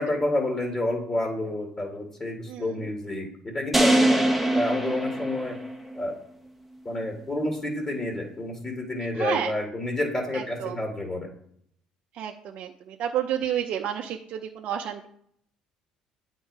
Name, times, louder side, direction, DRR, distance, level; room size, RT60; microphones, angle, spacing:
voice 1, 0.0-4.2 4.5-5.5 6.0-6.1 6.9-11.3, left 1 dB, 25° left, 1 dB, 1.8 m, -29 dB
sound 1, 3.7-6.0, right 1 dB, 5° right, 1.2 m, -23 dB
voice 2, 9.2-9.5 10.3-10.8 12.1-15.1, right 9 dB, 65° right, 2 dB, 0.7 m, -30 dB
8.7 x 4.5 x 4.7 m, 0.68 s
supercardioid pair, 85°, 2 cm